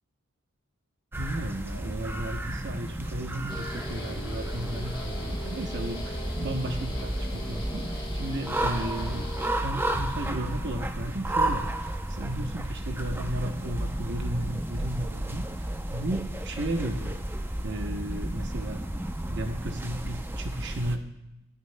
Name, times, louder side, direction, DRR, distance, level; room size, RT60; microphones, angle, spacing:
sound 1, 1.1-21.0, right 1 dB, 10° right, 0.6 m, -32 dB
voice 1, 1.2-9.3 9.6-11.6 12.1-17.2 17.6-18.8 19.3-21.0, right 1 dB, 55° right, 4 dB, 0.9 m, -34 dB
Guitar, 3.5-10.0, left 1 dB, 20° left, 1.7 m, -40 dB
24.0 x 9.7 x 2.2 m, 0.92 s
head